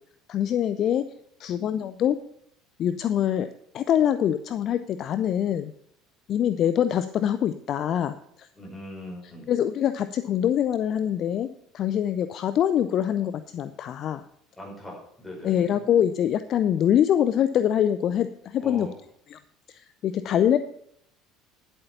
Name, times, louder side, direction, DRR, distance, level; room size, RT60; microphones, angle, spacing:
voice 1, 0.3-1.0 1.4-2.2 2.8-3.5 3.7-5.7 6.3-8.5 9.5-11.5 11.7-14.2 15.4-18.9 19.3-19.4 19.7-20.6, left 10 dB, 45° left, 12 dB, 0.5 m, -24 dB
voice 2, 8.6-9.5 14.6-15.8 18.6-19.0, left 1 dB, 10° left, -1 dB, 5.5 m, -40 dB
10.5 x 8.0 x 5.6 m, 0.70 s
figure-of-eight pair, 65°, 0 cm